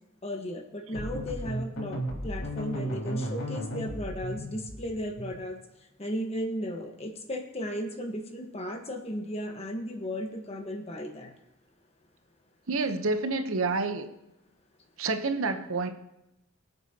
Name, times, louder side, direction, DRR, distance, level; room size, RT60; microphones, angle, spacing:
voice 1, 0.2-5.6 6.0-11.3, equal, 30° left, 4 dB, 1.3 m, -35 dB
sound 1, 0.9-5.5, equal, 85° left, 3.8 m, -35 dB
voice 2, 12.7-14.1 15.0-15.9, right 3 dB, 75° right, 8 dB, 0.9 m, -28 dB
23.5 x 8.1 x 2.8 m, 0.90 s
head